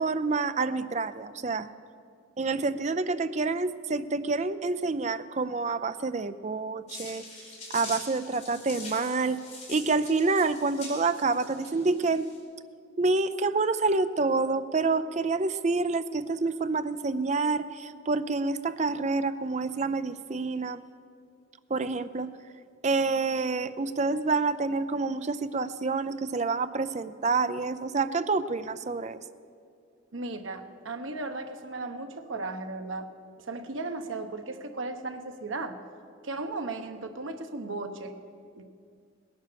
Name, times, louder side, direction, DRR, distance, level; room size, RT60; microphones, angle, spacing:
voice 1, 0.0-1.7 2.4-7.2 7.7-9.4 9.7-12.3 13.0-20.8 21.7-22.3 22.8-29.2, right 3 dB, 35° right, 12 dB, 0.5 m, -28 dB
sound 1, 6.9-12.4, left 3 dB, 35° left, 5.0 m, -44 dB
voice 2, 30.1-33.1 33.4-35.8 36.2-38.2 38.6-38.7, right 3 dB, 80° right, 7 dB, 1.2 m, -36 dB
19.0 x 11.0 x 6.9 m, 2.3 s
head